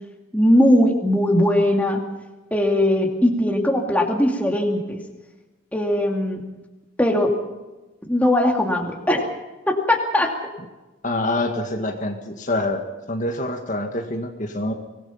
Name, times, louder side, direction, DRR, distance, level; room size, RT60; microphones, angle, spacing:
voice 1, 0.3-2.0 2.5-5.0 5.7-6.4 7.0-7.3 8.1-9.3 9.7-10.3, left 1 dB, 5° left, 2 dB, 2.5 m, -19 dB
voice 2, 11.0-12.8 13.1-14.7, left 2 dB, 40° left, 4 dB, 1.9 m, -26 dB
25.0 x 19.5 x 5.8 m, 1.1 s
head